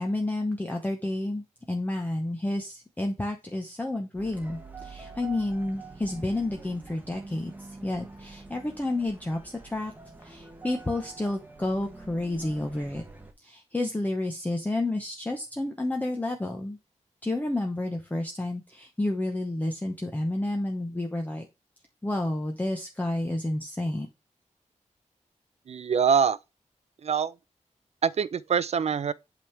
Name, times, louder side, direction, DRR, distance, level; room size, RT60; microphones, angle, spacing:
voice 1, 0.0-9.9 10.2-13.0 13.4-16.8 17.2-21.5 22.0-24.1, left 1 dB, 10° left, 0.8 m, -30 dB
sound 1, 4.2-13.3, right 3 dB, 15° right, 1.1 m, -46 dB
voice 2, 25.7-26.4 27.0-27.3 28.0-29.1, right 6 dB, 55° right, 0.5 m, -24 dB
8.3 x 3.6 x 4.5 m
wide cardioid pair, 180°, 13 cm